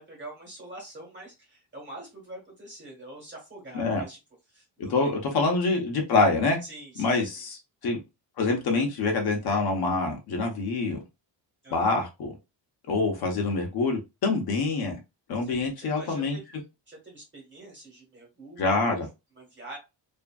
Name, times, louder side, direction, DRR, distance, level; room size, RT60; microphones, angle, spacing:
voice 1, 0.0-4.2 4.5-5.1 6.6-7.2 11.6-11.8 15.4-16.4 16.9-19.0 19.4-19.8, right 1 dB, 25° right, 1.3 m, -45 dB
voice 2, 4.8-6.6 7.0-8.0 8.4-11.0 11.7-12.3 12.9-15.0 15.3-16.4 18.6-19.1, left 3 dB, 55° left, 0.8 m, -26 dB
2.7 x 2.5 x 2.3 m
cardioid pair, 165°, 45 cm